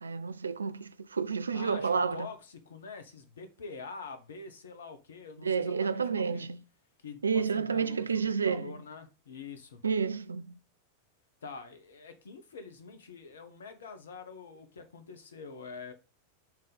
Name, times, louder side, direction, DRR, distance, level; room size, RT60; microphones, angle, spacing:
voice 1, 0.0-2.3 5.4-6.6 7.2-8.7 9.8-10.5, right 6 dB, 75° right, 0.4 m, -30 dB
voice 2, 1.5-6.5 7.0-9.8 11.4-15.9, left 4 dB, 65° left, 1.2 m, -46 dB
6.1 x 3.8 x 5.2 m
figure-of-eight pair, 90°, 0 cm